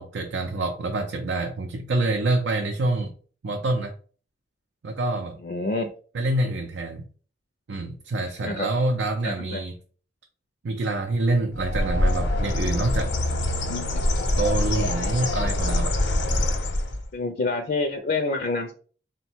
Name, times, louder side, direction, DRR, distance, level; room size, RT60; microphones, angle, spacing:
voice 1, 0.0-3.1 3.4-3.9 4.8-5.4 6.1-7.0 7.7-9.7 10.6-13.1 14.3-15.9, right 2 dB, 80° right, 0.5 m, -26 dB
voice 2, 5.4-5.9 8.4-8.7 9.2-9.6 13.7-14.1 15.6-15.8 17.1-18.7, left 3 dB, 55° left, 0.4 m, -28 dB
Bird, 11.5-17.1, left 1 dB, 90° left, 0.8 m, -24 dB
3.9 x 2.2 x 4.4 m
head